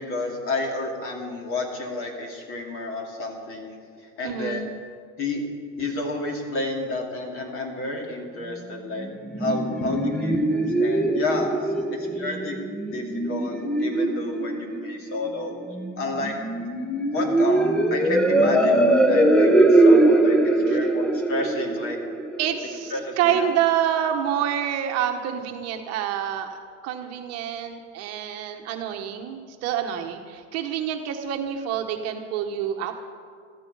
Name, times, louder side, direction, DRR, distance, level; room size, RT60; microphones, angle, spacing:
voice 1, 0.0-3.8 4.2-4.6 5.2-5.5 5.8-9.1 9.4-12.6 12.9-15.5 16.0-16.3 17.1-22.0 22.9-23.5, left 2 dB, 35° left, 2 dB, 2.7 m, -30 dB
voice 2, 4.2-4.7 20.7-20.9 22.4-32.9, right 9 dB, 45° right, 4 dB, 1.3 m, -27 dB
sound 1, 9.0-22.9, right 2 dB, ahead, 0.6 m, -21 dB
14.0 x 14.0 x 5.5 m, 2.1 s
supercardioid pair, 145°, 36 cm